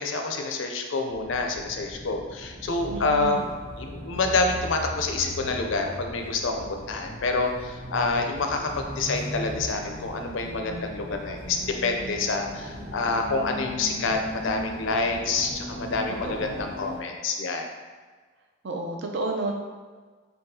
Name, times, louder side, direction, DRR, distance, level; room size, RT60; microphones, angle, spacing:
voice 1, 0.0-3.5 3.8-17.7, left 3 dB, 65° left, 3 dB, 0.4 m, -27 dB
sound 1, 1.1-16.6, equal, ahead, 0.7 m, -46 dB
Tube - London - Train - Interior - Slow Down & Stop - Doors, 2.6-17.0, equal, 70° right, 1.3 m, -39 dB
voice 2, 2.9-3.5 16.2-16.6 18.6-19.5, right 2 dB, 55° right, 1 dB, 0.5 m, -31 dB
5.3 x 2.3 x 2.7 m, 1.4 s
head